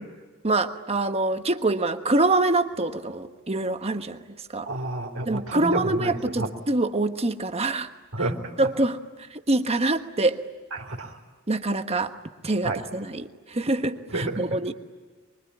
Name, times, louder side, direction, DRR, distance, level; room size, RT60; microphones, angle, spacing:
voice 1, 0.4-4.2 4.5-4.7 5.3-7.9 8.6-9.0 9.5-10.4 11.5-12.1 12.4-13.3 13.5-14.7, right 2 dB, 30° right, 8 dB, 1.2 m, -25 dB
voice 2, 4.7-6.5 8.1-8.5 10.7-11.1 12.6-12.8 14.1-14.6, right 2 dB, 85° right, -1 dB, 3.8 m, -30 dB
24.5 x 24.0 x 9.9 m, 1.4 s
head